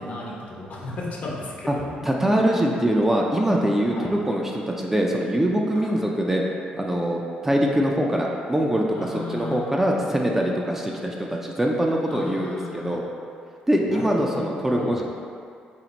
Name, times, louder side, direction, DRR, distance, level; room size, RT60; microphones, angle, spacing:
voice 1, 0.0-1.7 3.9-4.1 5.7-6.0 8.9-9.6 12.1-13.0 13.9-15.0, left 3 dB, 60° left, -3 dB, 0.8 m, -34 dB
voice 2, 2.0-6.4 6.7-13.0 13.7-15.0, right 1 dB, 10° right, -1 dB, 0.4 m, -23 dB
4.3 x 2.0 x 3.9 m, 2.3 s
cardioid pair, 95°, 3 cm